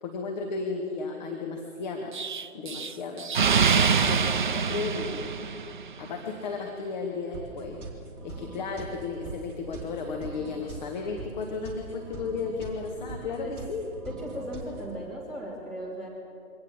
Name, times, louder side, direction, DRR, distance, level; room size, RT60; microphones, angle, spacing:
voice 1, 0.0-2.1 2.5-3.3 3.8-5.4 6.0-7.8 8.2-13.8, left 4 dB, 30° left, 1 dB, 2.1 m, -34 dB
Explosion, 2.1-6.0, right 6 dB, 35° right, 0.7 m, -25 dB
sound 1, 7.3-15.0, right 3 dB, 15° right, 3.3 m, -42 dB
voice 2, 14.0-16.1, equal, ahead, -6 dB, 3.2 m, -37 dB
25.0 x 18.5 x 7.5 m, 2.5 s
figure-of-eight pair, 150°, 43 cm